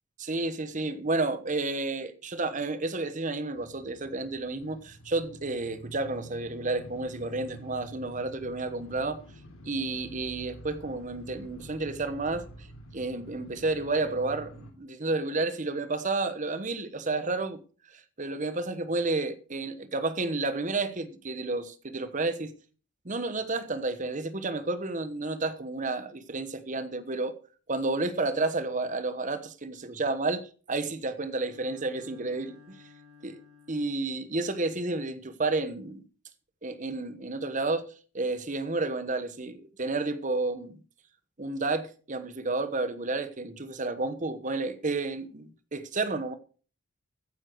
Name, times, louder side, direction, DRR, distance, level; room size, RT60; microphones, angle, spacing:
voice 1, 0.2-9.2 9.6-12.4 12.9-17.6 18.2-22.5 23.0-27.4 27.7-32.8 33.2-33.4 33.7-36.0 36.6-40.8 41.4-46.3, right 3 dB, 35° right, 1.1 m, -31 dB
sound 1, 3.6-14.7, equal, 75° left, 3.2 m, -47 dB
Bowed string instrument, 31.1-34.2, left 5 dB, 85° right, 5.2 m, -55 dB
14.0 x 9.9 x 4.6 m
head